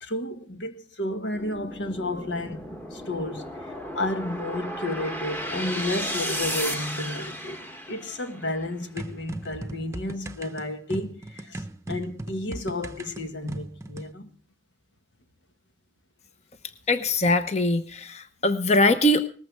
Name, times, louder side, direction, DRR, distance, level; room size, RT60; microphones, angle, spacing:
voice 1, 0.0-3.5 3.9-7.6 7.9-14.3, left 2 dB, 85° left, 1.6 m, -32 dB
sound 1, 1.3-8.6, equal, 10° left, 1.2 m, -34 dB
sound 2, 9.0-14.1, right 1 dB, 15° right, 0.7 m, -38 dB
voice 2, 16.9-19.3, left 1 dB, 35° left, 0.9 m, -22 dB
19.0 x 14.5 x 3.5 m
head